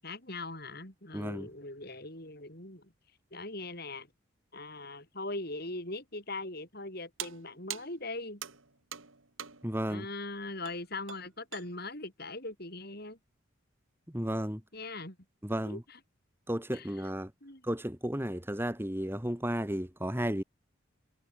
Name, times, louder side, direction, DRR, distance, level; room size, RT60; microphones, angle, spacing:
voice 1, 0.0-2.9 3.3-4.1 4.5-8.4 9.9-13.2 14.7-15.2 15.6-16.0 16.7-17.1 17.4-17.7, left 2 dB, 50° left, 7.4 m, -41 dB
voice 2, 1.1-1.5 9.6-10.1 14.1-14.6 15.4-15.8 16.5-17.3 17.6-20.4, equal, 10° right, 1.9 m, -33 dB
sound 1, 7.2-9.8 10.7-10.8 11.1-11.7, right 10 dB, 75° right, 3.1 m, -43 dB
head